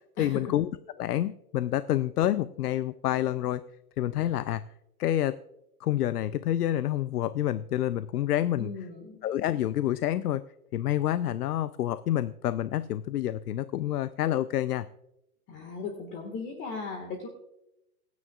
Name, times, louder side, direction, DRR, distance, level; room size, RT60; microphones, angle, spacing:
voice 1, 0.2-0.7 1.0-3.6 4.0-4.6 5.0-5.4 5.8-8.7 9.2-10.4 10.7-14.9, left 12 dB, 75° left, 13 dB, 0.7 m, -28 dB
voice 2, 8.6-9.2 15.5-17.3, left 4 dB, 25° left, 2 dB, 1.8 m, -37 dB
28.5 x 9.6 x 2.5 m, 0.86 s
hypercardioid pair, 150°, 46 cm